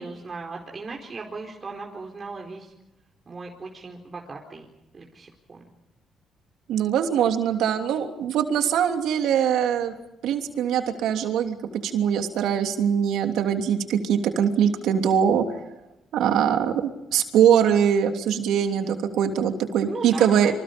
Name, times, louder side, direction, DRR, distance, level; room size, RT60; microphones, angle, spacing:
voice 1, 0.0-2.7 3.3-4.7 4.9-5.6 19.9-20.5, right 3 dB, 35° right, 1 dB, 4.5 m, -37 dB
voice 2, 6.7-9.9 10.2-11.6 11.8-15.4 16.1-20.5, right 8 dB, 85° right, 5 dB, 3.1 m, -22 dB
28.5 x 27.0 x 5.4 m, 0.93 s
cardioid pair, 90°, 0 cm